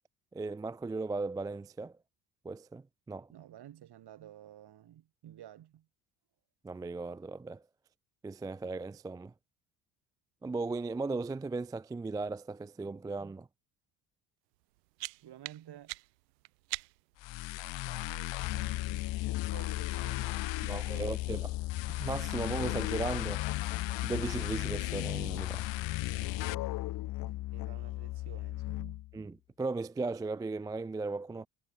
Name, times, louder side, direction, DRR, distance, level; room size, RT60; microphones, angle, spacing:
voice 1, 0.3-1.9 2.4-3.3 6.6-7.6 8.2-9.3 10.4-13.5 20.6-21.5 22.0-23.5 24.0-25.6 29.1-31.5, right 3 dB, 10° right, 0.3 m, -37 dB
voice 2, 3.1-5.9 15.2-16.0 17.9-21.4 25.7-29.1, right 11 dB, 55° right, 4.6 m, -54 dB
sound 1, 14.5-17.2, right 22 dB, 85° right, 1.6 m, -44 dB
sound 2, 17.2-26.6, left 18 dB, 65° left, 2.4 m, -38 dB
Musical instrument, 18.4-29.2, left 17 dB, 45° left, 0.6 m, -37 dB
hypercardioid pair, 70°, 48 cm